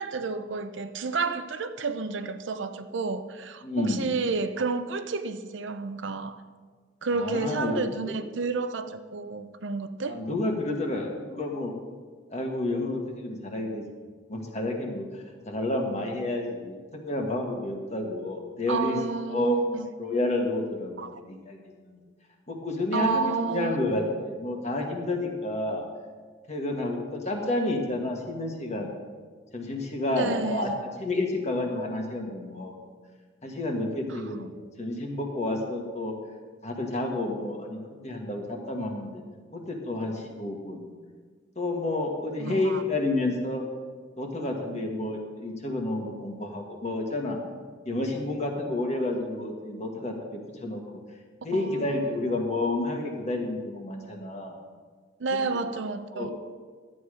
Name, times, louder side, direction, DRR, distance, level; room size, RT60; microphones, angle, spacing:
voice 1, 0.0-6.4 7.0-10.3 18.7-19.4 19.7-19.9 21.0-21.1 22.9-23.8 30.1-30.8 34.1-34.4 42.4-42.8 51.5-52.3 55.2-56.3, right 4 dB, 70° right, 0.6 m, -30 dB
voice 2, 3.6-4.1 7.1-7.8 10.1-11.7 12.3-13.8 14.3-19.0 19.3-19.6 20.0-21.6 21.9-22.0 22.5-25.9 26.5-28.9 29.5-30.7 31.0-32.7 33.4-36.1 36.6-37.8 38.0-39.2 39.5-40.9 41.6-43.7 44.2-47.4 47.9-50.8 51.4-54.5 55.3-55.4 56.1-56.3, left 2 dB, 35° left, 1.6 m, -30 dB
12.5 x 8.8 x 4.9 m
head